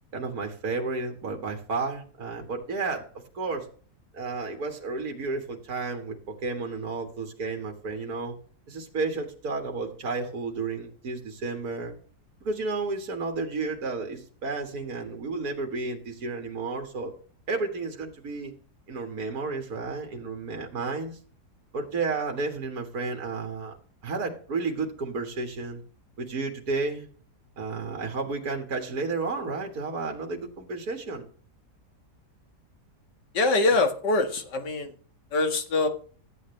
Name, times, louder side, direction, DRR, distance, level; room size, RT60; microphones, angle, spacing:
voice 1, 0.1-3.1 3.3-3.7 4.1-8.4 8.7-11.9 12.4-17.1 17.5-18.5 18.9-21.2 21.7-23.8 24.0-25.8 26.2-27.1 27.6-31.3, right 3 dB, 60° right, 3 dB, 2.2 m, -32 dB
voice 2, 33.3-34.9 35.3-35.9, left 2 dB, 85° left, 6 dB, 2.3 m, -24 dB
14.0 x 8.8 x 3.2 m, 0.42 s
omnidirectional pair, 1.8 m